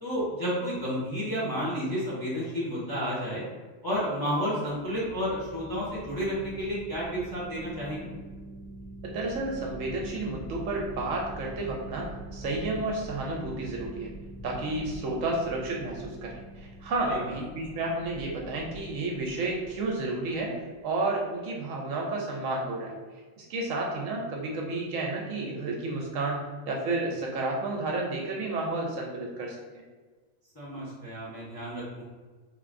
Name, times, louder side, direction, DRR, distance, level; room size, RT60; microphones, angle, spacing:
voice 1, 0.0-3.4 3.8-8.1 17.1-17.2 30.5-32.0, equal, 20° left, -8 dB, 0.8 m, -31 dB
sound 1, 4.7-20.9, right 1 dB, 70° left, 1.3 m, -44 dB
voice 2, 9.0-14.1 14.4-23.0 23.4-29.6, right 2 dB, 70° right, -1 dB, 0.9 m, -31 dB
3.7 x 3.0 x 2.5 m, 1.4 s
omnidirectional pair, 1.5 m